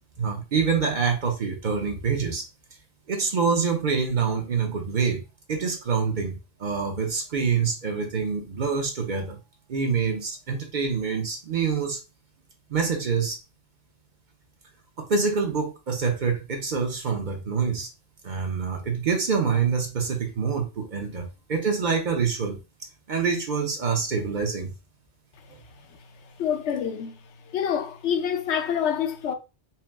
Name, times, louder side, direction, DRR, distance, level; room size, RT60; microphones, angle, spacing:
voice 1, 0.2-2.5 3.1-5.2 5.5-9.4 9.7-12.0 12.7-13.4 15.0-17.9 18.2-22.6 23.1-24.7, right 5 dB, 50° right, 0.7 m, -26 dB
voice 2, 26.4-27.1 27.5-29.3, left 8 dB, 80° left, 0.9 m, -26 dB
4.4 x 2.0 x 3.5 m
omnidirectional pair, 1.1 m